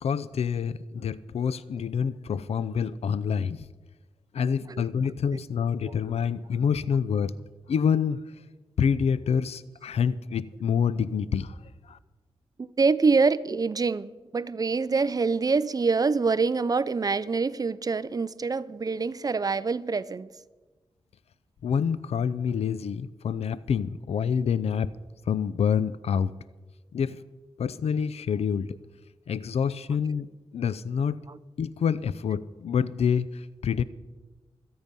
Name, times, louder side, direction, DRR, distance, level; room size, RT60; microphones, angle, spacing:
voice 1, 0.0-3.7 4.3-7.3 7.7-8.2 8.8-11.6 11.9-12.0 21.6-24.9 25.3-26.3 26.9-27.2 27.6-28.8 29.3-30.3 30.5-31.2 31.6-33.8, left 7 dB, 80° left, 0.5 m, -27 dB
voice 2, 12.6-20.3 31.3-31.4, right 4 dB, 35° right, 0.5 m, -25 dB
24.5 x 8.8 x 5.4 m
wide cardioid pair, 95°, 10 cm